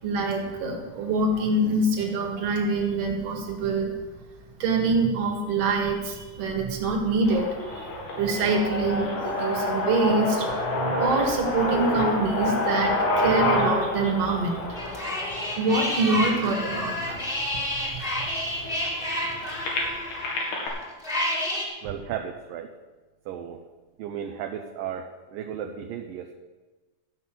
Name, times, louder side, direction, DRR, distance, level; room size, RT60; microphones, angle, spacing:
voice 1, 0.0-3.9 4.6-7.9 8.1-15.0 15.6-19.1, right 3 dB, 45° right, 1 dB, 2.5 m, -26 dB
sound 1, 7.2-17.2 17.9-18.0 18.2-20.7, left 1 dB, 80° left, 4.1 m, -28 dB
sound 2, 14.7-21.6, left 1 dB, 20° left, 1.7 m, -30 dB
voice 2, 21.8-22.7 23.3-23.6 24.0-26.3, right 9 dB, 75° right, 3 dB, 2.2 m, -34 dB
14.0 x 6.0 x 7.6 m, 1.2 s
omnidirectional pair, 4.4 m